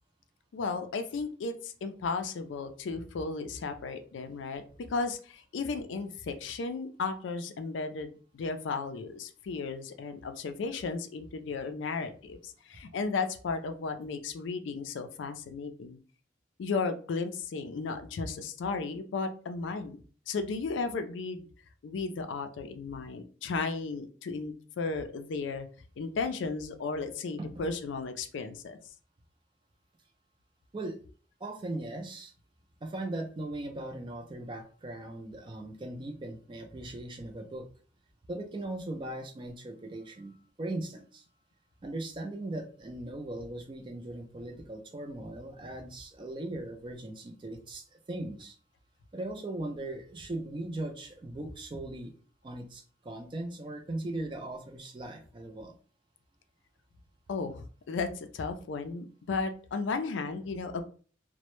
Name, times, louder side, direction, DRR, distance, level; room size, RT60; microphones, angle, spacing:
voice 1, 0.5-4.6 4.9-16.0 16.6-21.5 21.8-25.7 26.0-28.8 57.3-60.8, left 4 dB, 75° left, 8 dB, 0.3 m, -34 dB
voice 2, 31.4-32.3 32.8-37.7 38.3-41.2 41.8-48.5 49.1-52.1 52.4-55.7, right 2 dB, 25° right, 4 dB, 0.3 m, -39 dB
2.1 x 2.0 x 2.9 m, 0.40 s
head